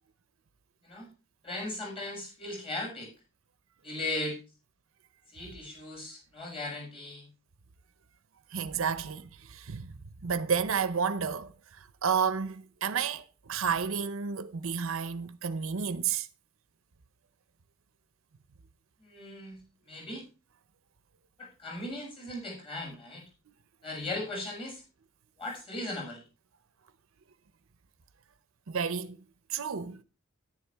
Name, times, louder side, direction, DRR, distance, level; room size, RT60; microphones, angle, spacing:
voice 1, 1.4-3.1 3.8-4.4 5.3-7.3 19.0-20.2 21.4-23.2 23.8-24.8 25.4-26.2, left 2 dB, 25° left, 6.6 m, -38 dB
voice 2, 8.5-9.9 10.2-16.3 28.7-29.2 29.5-30.0, right 6 dB, 70° right, 0.6 m, -31 dB
10.5 x 10.0 x 3.4 m
head